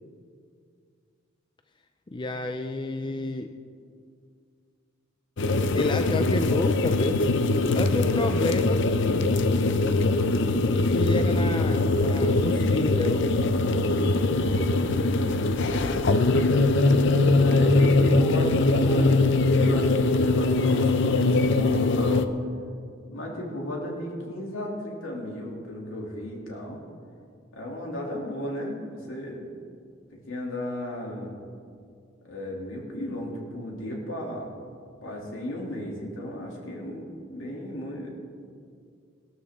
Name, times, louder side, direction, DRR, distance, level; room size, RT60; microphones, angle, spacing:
voice 1, 2.1-3.5 5.7-7.3 7.7-8.8 10.9-13.3 15.7-16.0, left 2 dB, 25° left, 7 dB, 0.4 m, -30 dB
sound 1, 5.4-22.2, left 2 dB, 65° left, 0.6 m, -22 dB
voice 2, 14.0-14.6 17.3-22.2 23.1-26.8 27.5-29.6 30.1-31.3 32.2-34.5 35.0-38.1, left 1 dB, 80° left, -2 dB, 2.9 m, -34 dB
18.5 x 12.5 x 3.7 m, 2.2 s
head